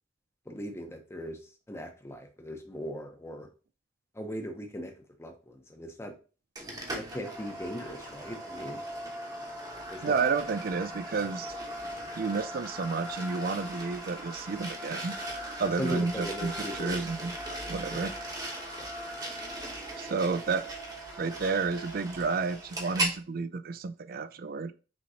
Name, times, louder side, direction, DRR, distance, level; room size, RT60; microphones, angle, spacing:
voice 1, 0.5-1.4 1.7-3.5 4.1-4.9 5.2-6.1 7.0-8.8 9.9-10.2 15.8-17.0 17.9-18.2, equal, 15° left, 3 dB, 0.8 m, -38 dB
sound 1, 6.6-23.2, right 1 dB, 20° right, 1.0 m, -38 dB
voice 2, 10.0-11.5 12.1-15.1 15.6-16.5 16.8-17.4 17.7-18.1 20.0-20.6 21.2-24.7, right 4 dB, 50° right, 13 dB, 0.4 m, -31 dB
6.2 x 3.0 x 2.7 m, 0.34 s
head